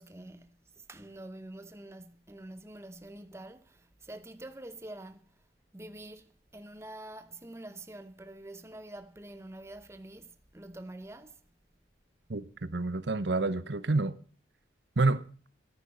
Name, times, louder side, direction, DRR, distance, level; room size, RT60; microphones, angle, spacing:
voice 1, 0.0-5.4 5.7-11.4, right 1 dB, 15° right, 0.7 m, -46 dB
voice 2, 12.3-14.2 15.0-15.2, right 3 dB, 60° right, 0.9 m, -28 dB
13.5 x 10.5 x 7.2 m
head